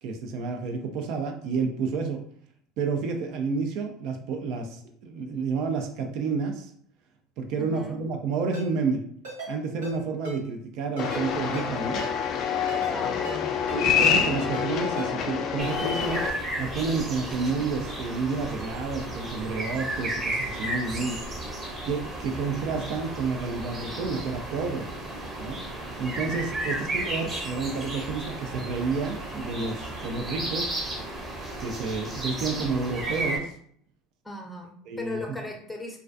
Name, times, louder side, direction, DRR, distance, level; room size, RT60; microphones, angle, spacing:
voice 1, 0.0-2.2 2.8-6.7 7.4-9.0 9.5-12.0 13.7-16.3 16.6-21.2 21.8-24.9 25.4-25.6 26.0-30.8 31.6-33.5 34.9-35.2, right 4 dB, 65° right, 4 dB, 0.3 m, -30 dB
voice 2, 7.6-8.0 12.9-13.5 26.7-26.8 34.2-36.0, left 2 dB, 5° left, 1 dB, 0.6 m, -37 dB
Ringtone, 8.5-8.7 9.2-9.5 9.8-10.0 10.2-10.4 11.0-11.2 11.5-11.7 12.0-12.1 12.7-13.0 13.2-13.4 13.7-13.8 14.4-14.7 15.0-15.1, right 2 dB, 90° right, 1.3 m, -37 dB
sound 1, 11.0-16.3, left 7 dB, 50° left, 0.3 m, -26 dB
sound 2, 15.6-33.4, right 1 dB, 30° right, 0.8 m, -34 dB
2.3 x 2.2 x 2.4 m, 0.62 s
hypercardioid pair, 80°, 0 cm